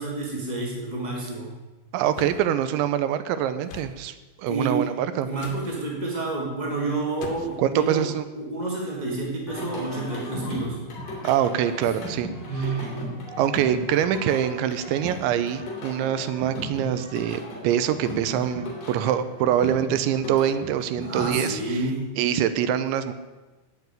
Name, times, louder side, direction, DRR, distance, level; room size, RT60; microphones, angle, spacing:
voice 1, 0.0-1.5 4.5-4.9 5.2-8.0 8.4-10.8 12.5-12.9 21.0-22.1, right 3 dB, 40° right, -3 dB, 0.6 m, -29 dB
voice 2, 1.9-5.3 7.6-8.3 11.2-12.3 13.4-21.9 22.2-23.1, right 10 dB, 80° right, 12 dB, 2.9 m, -24 dB
sound 1, 2.1-2.5 3.7-4.0 5.4-5.7 7.2-7.6, left 6 dB, 90° left, 3.7 m, -38 dB
Singing, 9.5-21.9, left 1 dB, 45° left, 4.8 m, -36 dB
16.5 x 5.8 x 8.9 m, 1.2 s
omnidirectional pair, 5.4 m